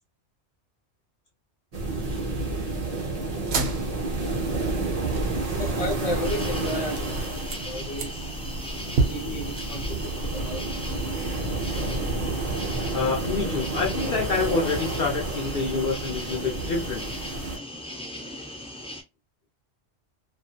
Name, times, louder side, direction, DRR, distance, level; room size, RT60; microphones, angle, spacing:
sound 1, 1.7-17.6, right 2 dB, 40° right, 0.8 m, -30 dB
sound 2, 3.5-12.9, right 3 dB, 70° right, 0.8 m, -34 dB
voice 1, 5.6-8.3 9.0-10.6, left 1 dB, 35° left, 0.8 m, -34 dB
sound 3, 6.2-19.0, left 1 dB, 10° left, 0.3 m, -39 dB
voice 2, 12.9-17.2, left 4 dB, 65° left, 0.8 m, -27 dB
2.6 x 2.4 x 2.2 m
omnidirectional pair, 1.1 m